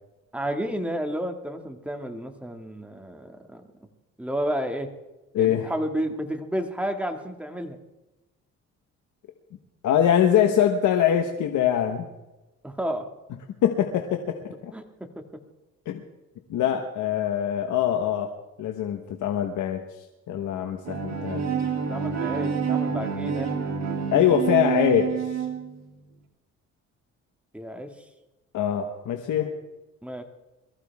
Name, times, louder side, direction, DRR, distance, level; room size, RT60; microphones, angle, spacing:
voice 1, 0.3-3.6 4.2-4.9 5.4-7.8 12.6-13.1 14.7-14.8 21.6-23.5 27.5-27.9 30.0-30.2, equal, 5° right, 4 dB, 2.1 m, -31 dB
voice 2, 5.3-5.7 9.8-12.1 13.6-14.7 15.9-16.0 16.5-18.3 18.6-19.8 20.3-21.4 24.1-25.5 28.5-29.5, left 9 dB, 80° left, 4 dB, 1.4 m, -23 dB
Bowed string instrument, 20.8-25.8, right 6 dB, 60° right, 3.2 m, -28 dB
22.5 x 14.5 x 3.6 m, 1.0 s
cardioid pair, 90°, 30 cm